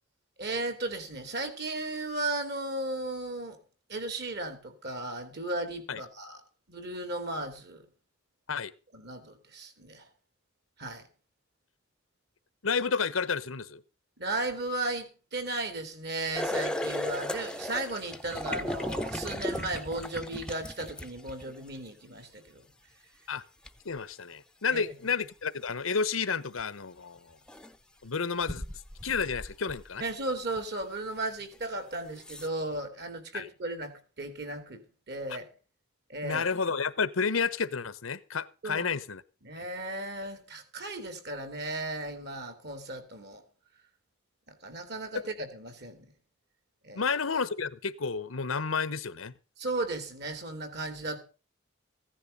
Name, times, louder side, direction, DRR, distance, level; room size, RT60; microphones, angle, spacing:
voice 1, 0.4-3.6 3.9-6.4 6.7-7.9 8.9-10.1 10.8-11.1 14.2-22.7 24.7-24.8 30.0-35.5 36.1-36.4 38.6-38.9 39.4-43.4 44.5-46.1 46.8-47.1 49.6-51.2, right 2 dB, 55° right, 2.8 m, -35 dB
voice 2, 12.6-13.8 23.3-23.4 23.8-27.4 28.0-28.6 29.0-30.0 33.3-33.5 36.2-39.2 39.6-39.7 45.1-45.2 46.9-49.3, left 5 dB, 85° left, 1.0 m, -31 dB
sound 1, 16.3-21.6 23.7-23.8 26.6-26.7 27.5-27.7 28.4-30.1 30.6-30.7 31.5-31.6 32.2-32.5, left 1 dB, 5° left, 0.7 m, -35 dB
15.5 x 10.0 x 5.3 m
head